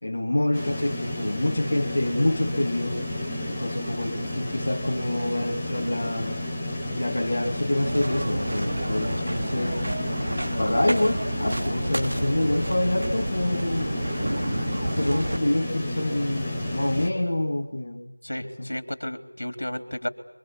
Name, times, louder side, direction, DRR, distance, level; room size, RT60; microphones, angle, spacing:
voice 1, 0.0-3.0 3.5-6.4 6.9-9.8 10.6-14.0 14.9-18.1, left 1 dB, 40° left, 1 dB, 2.2 m, -27 dB
sound 1, 0.5-17.1, left 1 dB, 5° left, 1.7 m, -31 dB
sound 2, 7.8-15.4, right 1 dB, 55° right, 2.3 m, -30 dB
voice 2, 18.2-20.1, left 1 dB, 60° left, 8 dB, 3.6 m, -32 dB
28.5 x 24.5 x 8.5 m, 0.80 s
figure-of-eight pair, 175°, 0 cm